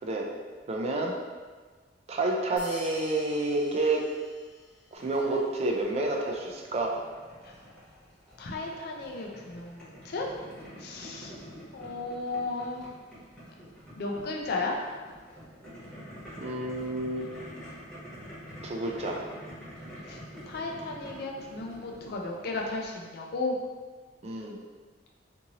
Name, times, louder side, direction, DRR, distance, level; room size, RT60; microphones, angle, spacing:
voice 1, 0.7-1.1 2.1-4.0 4.9-7.0 16.4-17.2 18.6-19.2 24.2-24.6, right 2 dB, 35° right, 0 dB, 0.4 m, -29 dB
sound 1, 2.6-4.9, left 1 dB, 30° left, 1.2 m, -46 dB
Boiling, 4.9-23.0, equal, 5° left, 1.0 m, -47 dB
voice 2, 8.4-10.3 10.8-11.3 11.7-12.8 14.0-14.7 20.1-20.2 20.5-23.6, left 3 dB, 60° left, 0 dB, 0.4 m, -34 dB
2.7 x 2.6 x 2.8 m, 1.5 s
head